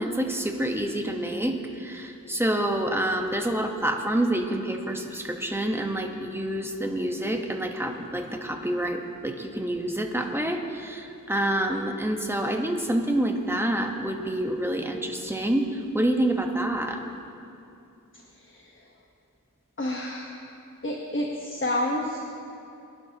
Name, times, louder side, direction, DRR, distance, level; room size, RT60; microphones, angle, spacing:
voice 1, 0.0-17.0, right 1 dB, 5° right, 3 dB, 1.1 m, -27 dB
voice 2, 18.3-18.7 19.8-20.3 20.8-22.4, left 1 dB, 40° left, -1 dB, 1.1 m, -29 dB
22.0 x 11.5 x 2.9 m, 2.7 s
wide cardioid pair, 60°, 33 cm